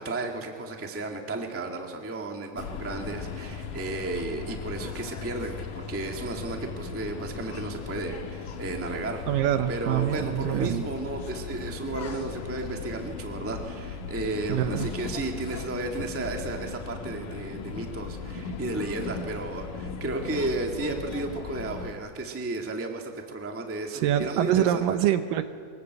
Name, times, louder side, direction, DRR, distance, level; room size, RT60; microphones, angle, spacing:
voice 1, 0.0-9.2 9.7-25.0, right 2 dB, 5° right, 2 dB, 1.0 m, -33 dB
sound 1, 2.6-21.9, left 5 dB, 65° left, 2.7 m, -37 dB
voice 2, 9.3-10.8 14.5-14.9 23.9-25.4, right 11 dB, 75° right, 10 dB, 2.4 m, -25 dB
23.5 x 20.5 x 8.1 m, 2.1 s
omnidirectional pair, 4.2 m